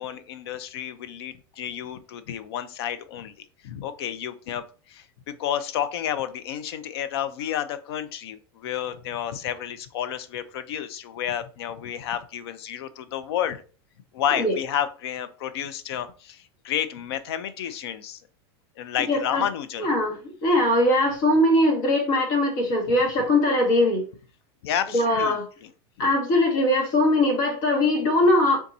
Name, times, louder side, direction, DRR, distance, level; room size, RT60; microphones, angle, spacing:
voice 1, 0.0-13.6 14.1-18.2 18.8-19.9 24.6-25.7, left 10 dB, 75° left, 12 dB, 0.5 m, -31 dB
voice 2, 19.1-19.4 19.8-24.0 24.9-25.4 26.0-28.6, left 1 dB, 50° left, 0 dB, 1.7 m, -21 dB
3.5 x 2.7 x 4.1 m, 0.38 s
supercardioid pair, 160°, 13 cm